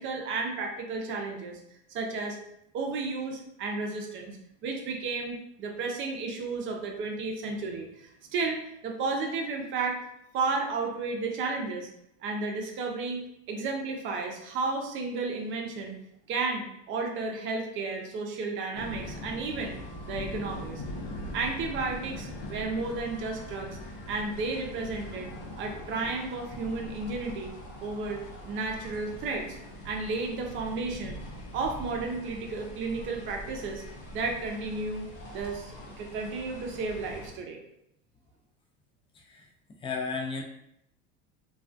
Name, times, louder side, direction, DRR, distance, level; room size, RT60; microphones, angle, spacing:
voice 1, 0.0-1.6 1.9-2.4 2.7-4.4 4.6-10.0 10.3-11.9 12.2-13.2 13.5-15.9 16.3-19.8 20.1-20.8 21.3-23.8 24.1-25.3 25.6-27.5 27.8-29.6 29.8-31.2 31.5-33.8 34.1-35.1 35.3-37.6, right 3 dB, 45° right, 2 dB, 0.5 m, -33 dB
sound 1, 18.7-37.3, left 1 dB, 85° left, 0.8 m, -42 dB
voice 2, 39.2-39.5 39.8-40.4, left 4 dB, 20° left, 1 dB, 0.4 m, -33 dB
2.3 x 2.2 x 2.5 m, 0.78 s
supercardioid pair, 115°, 29 cm